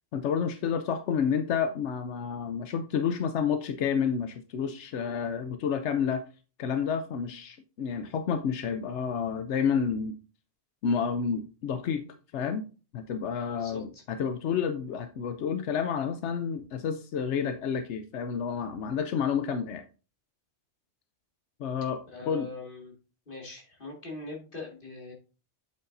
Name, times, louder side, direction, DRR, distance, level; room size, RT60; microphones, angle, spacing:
voice 1, 0.1-6.2 6.6-10.2 10.8-12.0 12.3-12.6 12.9-19.8 21.6-22.0 22.3-22.5, left 7 dB, 90° left, 8 dB, 1.0 m, -30 dB
voice 2, 13.4-14.0 22.1-22.9 23.3-25.1, left 3 dB, 50° left, 0 dB, 2.3 m, -42 dB
8.3 x 7.3 x 2.6 m, 0.35 s
omnidirectional pair, 1.2 m